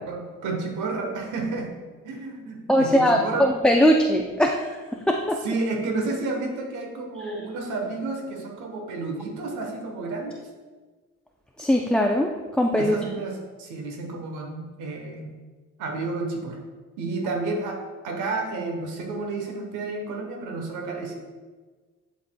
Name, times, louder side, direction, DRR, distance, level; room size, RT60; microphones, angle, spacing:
voice 1, 0.1-1.7 2.0-3.5 5.4-10.4 12.7-15.3 15.8-16.6 17.0-17.8 18.0-21.1, right 3 dB, 85° right, 2 dB, 1.0 m, -31 dB
voice 2, 2.7-4.7 5.1-5.4 11.6-13.0, equal, 5° left, 1 dB, 0.4 m, -20 dB
12.0 x 4.1 x 2.2 m, 1.4 s
cardioid pair, 90°, 30 cm